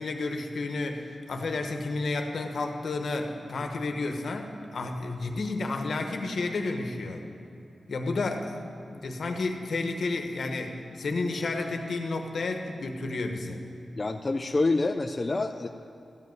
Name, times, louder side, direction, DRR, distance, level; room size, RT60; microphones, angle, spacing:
voice 1, 0.0-7.2 7.9-8.6 8.9-13.6, left 3 dB, 60° left, 4 dB, 1.0 m, -31 dB
voice 2, 13.9-15.7, left 3 dB, 25° left, 5 dB, 0.3 m, -27 dB
14.0 x 5.3 x 9.3 m, 2.8 s
wide cardioid pair, 165°, 0 cm